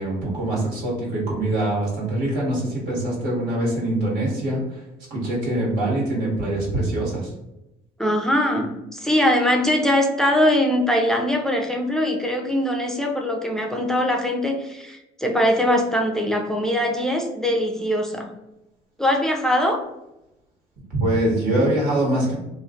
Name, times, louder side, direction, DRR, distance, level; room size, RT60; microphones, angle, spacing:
voice 1, 0.0-4.8 5.1-7.3 20.9-22.3, right 1 dB, 75° right, -4 dB, 1.4 m, -23 dB
voice 2, 8.0-18.3 19.0-19.8, left 1 dB, 5° left, 2 dB, 0.4 m, -22 dB
2.5 x 2.4 x 2.4 m, 0.92 s
cardioid pair, 110°, 17 cm